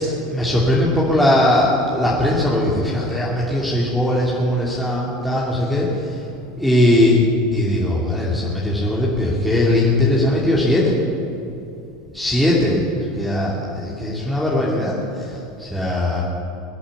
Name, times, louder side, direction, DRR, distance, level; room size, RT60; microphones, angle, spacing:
voice 1, 0.1-6.1 6.6-7.2 7.5-11.0 12.1-12.8 13.2-16.2, left 1 dB, 5° left, -6 dB, 2.9 m, -19 dB
22.5 x 8.6 x 6.9 m, 2.8 s
hypercardioid pair, 85°, 0 cm